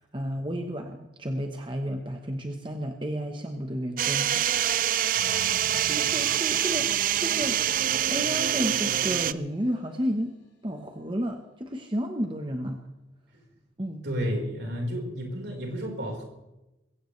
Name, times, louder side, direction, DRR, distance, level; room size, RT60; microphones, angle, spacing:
voice 1, 0.0-4.5 5.8-7.6 8.1-10.3 10.6-12.8 13.8-14.0, equal, 25° right, 3 dB, 1.1 m, -32 dB
sound 1, 4.0-9.3, right 11 dB, 45° right, 0.4 m, -25 dB
voice 2, 5.1-6.2 14.0-16.2, equal, 65° right, 0 dB, 4.5 m, -33 dB
sound 2, 6.2-10.7, left 3 dB, 75° left, 4.6 m, -50 dB
22.0 x 16.5 x 3.3 m, 0.98 s
head